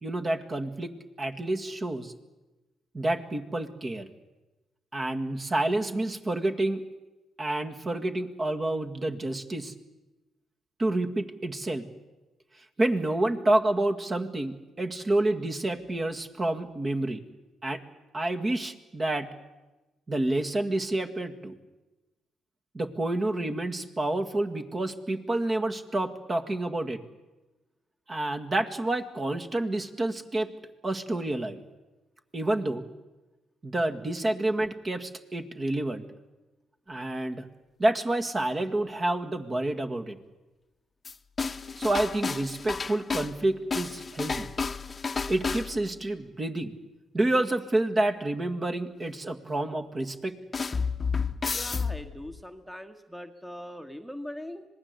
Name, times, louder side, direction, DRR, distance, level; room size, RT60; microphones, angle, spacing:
voice 1, 0.0-0.9 1.2-2.1 2.9-4.1 4.9-6.8 7.4-9.7 10.8-11.9 12.8-17.2 17.6-17.8 18.1-19.3 20.1-21.5 22.7-27.0 28.1-30.5 30.8-31.7 32.3-32.8 33.6-36.0 36.9-37.5 37.8-40.2 41.8-44.5 45.1-46.8 47.1-50.3, right 2 dB, 30° right, 5 dB, 1.9 m, -29 dB
sound 1, 41.0-43.4 43.7-45.9 50.5-52.4, left 5 dB, 30° left, 1.0 m, -31 dB
voice 2, 51.5-54.7, equal, 5° right, 7 dB, 1.4 m, -41 dB
26.0 x 19.5 x 8.2 m, 1.1 s
cardioid pair, 90°, 0 cm